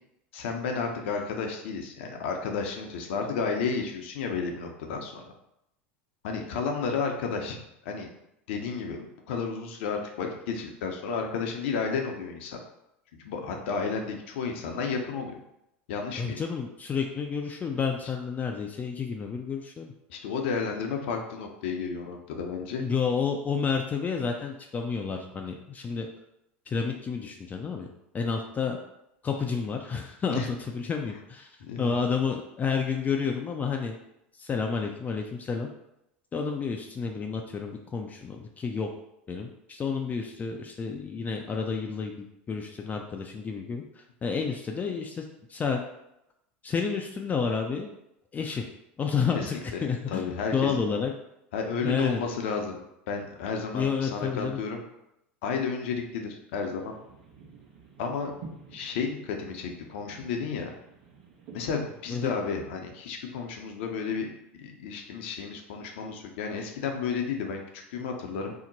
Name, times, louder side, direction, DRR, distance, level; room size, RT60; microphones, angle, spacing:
voice 1, 0.3-5.2 6.2-7.6 7.8-8.1 8.5-12.6 13.2-15.4 15.9-16.4 20.1-22.8 30.3-30.5 31.6-31.9 49.7-50.7 51.5-52.8 53.1-54.8 55.4-56.9 58.0-58.3 58.7-60.7 61.5-64.3 64.6-68.5, left 5 dB, 70° left, 3 dB, 0.6 m, -32 dB
voice 2, 16.2-19.9 22.8-26.1 26.7-27.9 28.1-28.8 29.2-31.5 31.8-34.0 34.4-35.7 36.3-38.9 39.3-45.8 46.6-47.9 48.3-48.7 49.0-49.6 49.8-51.1 51.9-52.2 53.7-54.6 62.1-62.3, left 5 dB, 25° left, 2 dB, 0.4 m, -30 dB
sound 1, 56.7-62.6, right 4 dB, 65° right, 0.9 m, -50 dB
2.8 x 2.1 x 3.9 m, 0.83 s
hypercardioid pair, 90°, 6 cm